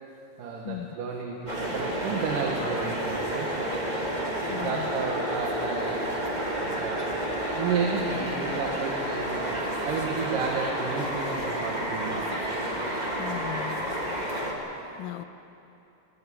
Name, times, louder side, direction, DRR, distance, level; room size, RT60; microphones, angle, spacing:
voice 1, 0.4-6.1 6.7-7.1 7.4-9.6 9.8-12.3, right 5 dB, 70° right, 0 dB, 3.1 m, -32 dB
sound 1, 1.5-14.5, right 1 dB, 15° right, 1.9 m, -30 dB
voice 2, 4.5-4.9 13.2-13.9 15.0-15.2, left 13 dB, 80° left, 10 dB, 2.3 m, -36 dB
22.5 x 15.0 x 8.6 m, 2.9 s
omnidirectional pair, 4.0 m